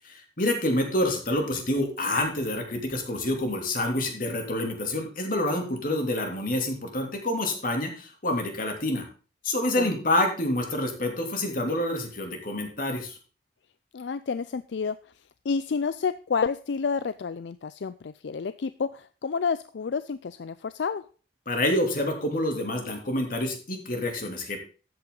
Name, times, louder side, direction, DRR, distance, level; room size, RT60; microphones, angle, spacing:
voice 1, 0.4-9.0 9.4-13.2 21.5-24.6, left 1 dB, 50° left, 3 dB, 2.9 m, -27 dB
voice 2, 13.9-21.1, left 5 dB, 75° left, 14 dB, 0.4 m, -30 dB
12.5 x 8.6 x 3.9 m, 0.38 s
head